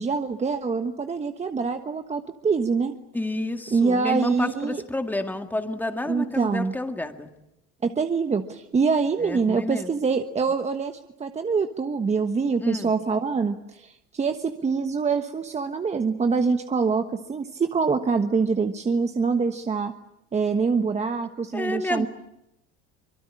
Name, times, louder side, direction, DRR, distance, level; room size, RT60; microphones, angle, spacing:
voice 1, 0.0-2.9 3.7-4.8 6.1-6.7 7.8-19.9 20.3-22.1, right 5 dB, 20° right, 7 dB, 1.3 m, -25 dB
voice 2, 3.1-7.3 9.2-9.9 12.6-12.9 21.5-22.1, left 2 dB, 5° left, 6 dB, 2.1 m, -29 dB
25.0 x 22.5 x 9.9 m, 0.86 s
cardioid pair, 120°, 30 cm